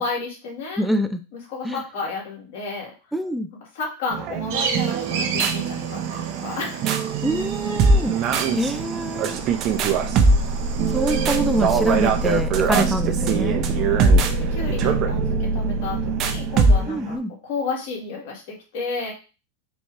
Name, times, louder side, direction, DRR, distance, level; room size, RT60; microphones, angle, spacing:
voice 1, 0.0-0.9 1.3-2.9 3.7-7.0 8.1-8.3 9.7-9.9 12.7-13.0 13.7-14.2 14.5-17.2 17.4-19.1, left 4 dB, 65° left, -1 dB, 1.9 m, -32 dB
voice 2, 0.8-1.2 1.6-1.8 3.1-3.5 7.2-8.2 8.5-9.4 10.9-13.6 16.9-17.3, equal, ahead, 6 dB, 0.5 m, -25 dB
sound 1, 4.1-17.2, right 4 dB, 40° right, 0.7 m, -22 dB
sound 2, 4.5-12.4, right 6 dB, 75° right, 1.2 m, -33 dB
sound 3, 9.4-16.9, right 1 dB, 40° left, 2.0 m, -28 dB
4.2 x 2.4 x 4.6 m, 0.32 s
supercardioid pair, 125°, 0 cm